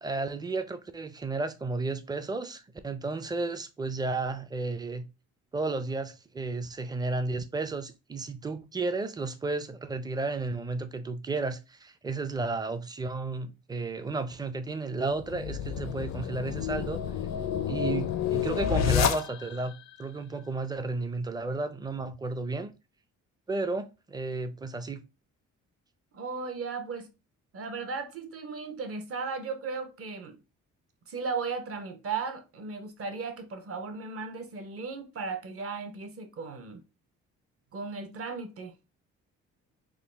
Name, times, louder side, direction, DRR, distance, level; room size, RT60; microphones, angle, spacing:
voice 1, 0.0-5.0 5.5-17.0 17.7-22.7 23.5-25.0, right 3 dB, 15° right, 0.4 m, -33 dB
sound 1, 15.1-19.7, left 9 dB, 65° left, 0.5 m, -29 dB
voice 2, 26.1-27.1 27.5-30.4 31.1-36.8 37.7-38.7, right 4 dB, 50° right, 0.9 m, -36 dB
3.8 x 2.3 x 3.2 m
cardioid pair, 90°, 30 cm